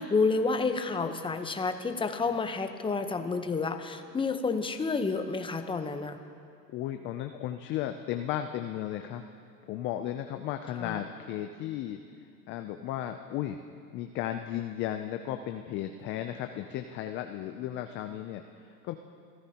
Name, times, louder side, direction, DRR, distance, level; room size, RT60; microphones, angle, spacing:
voice 1, 0.0-6.2 10.8-11.0, left 4 dB, 10° left, 7 dB, 0.8 m, -30 dB
voice 2, 6.7-9.2 9.6-12.0 12.5-13.6 13.9-18.9, left 11 dB, 25° left, 7 dB, 0.3 m, -35 dB
27.5 x 14.5 x 2.9 m, 2.3 s
hypercardioid pair, 110°, 50 cm